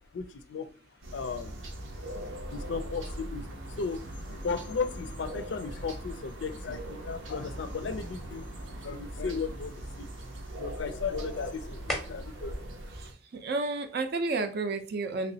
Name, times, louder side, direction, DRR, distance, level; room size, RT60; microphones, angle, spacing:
voice 1, 0.1-0.7 1.1-1.5 2.0-2.1 2.5-3.5 3.8-4.0 4.3-8.4 8.8-10.1 10.6-12.5, left 5 dB, 65° left, 10 dB, 0.4 m, -35 dB
sound 1, 1.0-13.1, right 1 dB, 90° right, 0.7 m, -40 dB
sound 2, 6.3-14.3, equal, ahead, 0.7 m, -46 dB
voice 2, 13.0-15.3, right 3 dB, 55° right, 7 dB, 0.5 m, -31 dB
3.1 x 3.0 x 2.7 m, 0.39 s
head